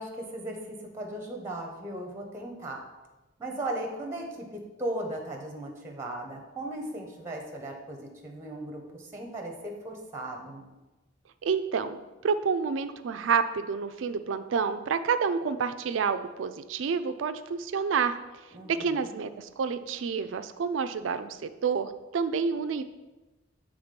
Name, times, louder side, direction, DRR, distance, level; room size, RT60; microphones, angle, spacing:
voice 1, 0.0-2.8 3.4-10.7 18.5-19.2, right 1 dB, 15° right, 1 dB, 0.8 m, -37 dB
voice 2, 11.4-18.2 18.7-22.8, right 5 dB, 70° right, 11 dB, 0.4 m, -29 dB
7.2 x 3.5 x 5.2 m, 1.1 s
head